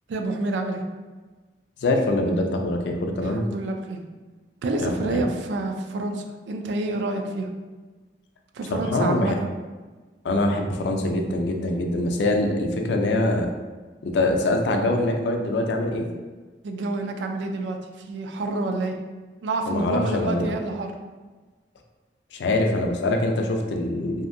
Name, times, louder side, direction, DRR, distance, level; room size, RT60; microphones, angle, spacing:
voice 1, 0.1-0.8 3.2-4.0 4.6-7.5 8.5-9.5 16.6-19.0 19.4-20.9, right 2 dB, 85° right, 5 dB, 0.3 m, -28 dB
voice 2, 1.8-3.4 4.8-5.3 8.7-9.4 10.2-13.5 14.0-16.1 19.7-20.5 22.3-24.3, left 2 dB, 75° left, 3 dB, 0.4 m, -24 dB
2.7 x 2.5 x 2.5 m, 1.3 s
head